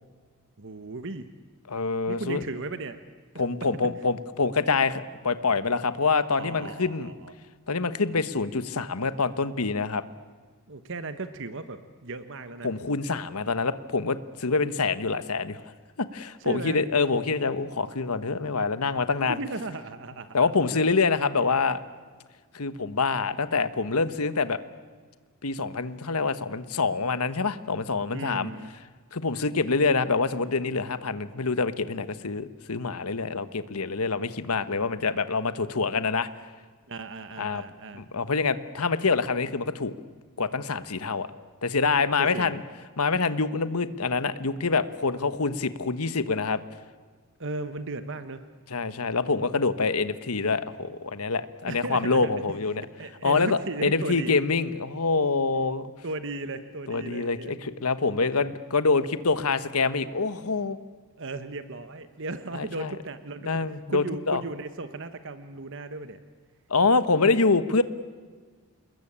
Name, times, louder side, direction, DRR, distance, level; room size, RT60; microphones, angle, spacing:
voice 1, 0.6-1.3 2.1-3.0 6.3-7.3 10.7-12.7 16.4-16.8 19.3-20.5 28.1-28.7 36.9-38.0 42.2-42.6 47.4-48.5 51.7-52.3 53.0-54.4 56.0-57.5 61.2-66.2, right 3 dB, 60° right, 10 dB, 1.2 m, -36 dB
voice 2, 1.7-2.4 3.4-7.1 7.7-10.0 12.6-15.6 16.0-19.4 20.3-21.8 22.5-24.6 25.4-28.5 29.1-36.3 37.4-37.6 37.9-39.9 40.4-41.3 41.6-42.6 43.0-46.6 48.7-52.9 53.2-55.9 56.9-60.8 62.5-63.0 63.4-64.4 66.7-67.8, left 4 dB, 80° left, 12 dB, 1.3 m, -26 dB
28.5 x 21.0 x 8.8 m, 1.5 s
head